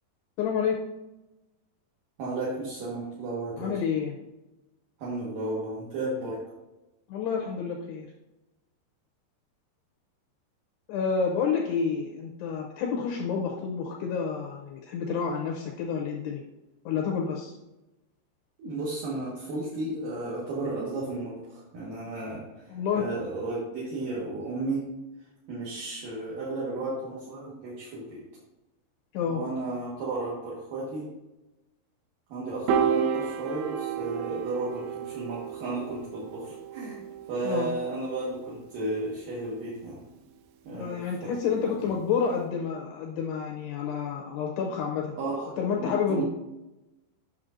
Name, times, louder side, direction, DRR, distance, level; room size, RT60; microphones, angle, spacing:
voice 1, 0.4-0.8 3.6-4.2 7.1-8.1 10.9-16.4 16.9-17.6 22.7-23.1 29.1-29.4 37.4-37.7 40.7-45.1 45.6-46.2, left 6 dB, 80° left, 1 dB, 2.5 m, -29 dB
voice 2, 2.2-3.7 5.0-6.4 18.6-22.7 23.0-24.8 25.5-28.2 29.3-31.1 32.3-40.0 40.6-41.6 41.8-41.9 45.2-45.5 45.8-46.2, right 2 dB, 60° right, -6 dB, 2.6 m, -33 dB
Piano, 32.7-39.1, right 7 dB, 85° right, 2.2 m, -32 dB
10.5 x 6.2 x 2.6 m, 1.0 s
omnidirectional pair, 5.5 m